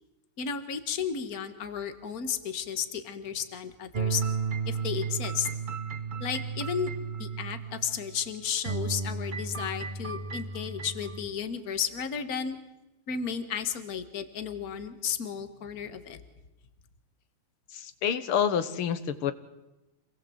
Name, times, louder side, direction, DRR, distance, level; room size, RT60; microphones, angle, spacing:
voice 1, 0.4-4.2 4.6-5.5 6.2-6.9 7.2-12.6 13.1-16.2, left 7 dB, 45° left, 9 dB, 2.0 m, -33 dB
sound 1, 3.9-8.3 8.6-11.3, right 5 dB, 60° right, 0.5 m, -33 dB
voice 2, 17.7-19.3, left 8 dB, 80° left, 12 dB, 2.1 m, -28 dB
27.0 x 19.5 x 8.0 m, 1.0 s
omnidirectional pair, 2.4 m